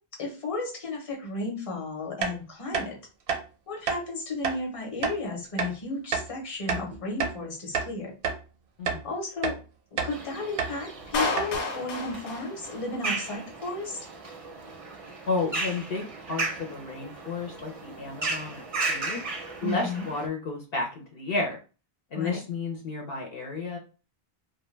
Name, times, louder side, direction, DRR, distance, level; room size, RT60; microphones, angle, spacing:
voice 1, 0.2-3.0 3.7-8.1 9.0-9.6 9.9-14.0 19.6-20.0 22.1-22.4, left 2 dB, 35° left, -1 dB, 0.9 m, -33 dB
sound 1, 2.2-2.3 2.7-2.9 3.3-3.4 3.9-4.0 4.4-4.6 5.0-5.2 5.6-5.7 6.1-6.3 6.7-7.4 7.7-7.9 8.2-8.4 8.9-9.0 9.4-9.6 10.0-10.1 10.6-10.7 11.0-11.1 11.4-11.6, right 6 dB, 90° right, 0.9 m, -29 dB
sound 2, 10.1-20.3, right 3 dB, 45° right, 0.5 m, -36 dB
Clapping, 11.1-13.2, left 3 dB, 55° left, 0.5 m, -31 dB
voice 2, 15.3-19.2 19.6-21.6 22.1-23.8, left 3 dB, 70° left, 0 dB, 0.9 m, -32 dB
2.2 x 2.2 x 3.1 m, 0.34 s
omnidirectional pair, 1.0 m